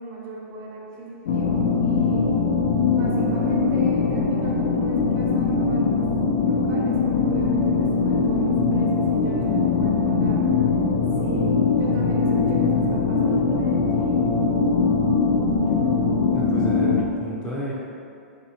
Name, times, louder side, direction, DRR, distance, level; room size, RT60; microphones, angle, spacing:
voice 1, 0.0-2.4 2.9-6.1 6.4-10.4 11.2-14.3, right 2 dB, 35° right, -3 dB, 0.6 m, -37 dB
sound 1, 1.3-17.0, left 4 dB, 70° left, 0.4 m, -21 dB
voice 2, 16.3-17.7, equal, 10° left, -7 dB, 0.5 m, -32 dB
2.8 x 2.7 x 2.8 m, 2.5 s
hypercardioid pair, 130°, 7 cm